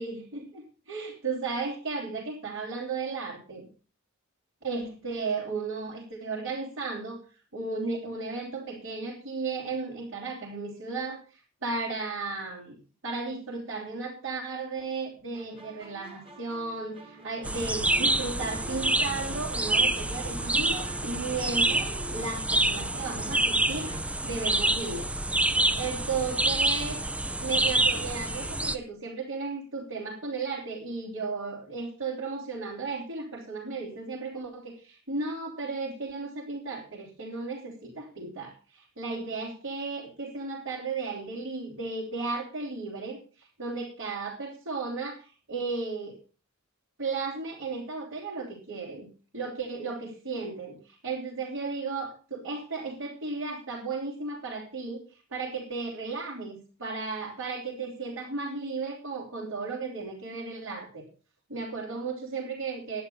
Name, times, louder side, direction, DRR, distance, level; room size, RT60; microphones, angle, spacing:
voice 1, 0.0-3.7 4.6-7.2 7.5-12.8 13.0-25.1 25.8-27.0 27.4-46.2 47.0-49.1 49.3-61.1 61.5-63.0, right 4 dB, 65° right, -4 dB, 3.4 m, -35 dB
sound 1, 15.3-24.1, right 2 dB, 25° right, 2.0 m, -45 dB
sound 2, 17.4-28.8, right 2 dB, 5° right, 0.5 m, -27 dB
11.0 x 9.7 x 5.6 m, 0.35 s
head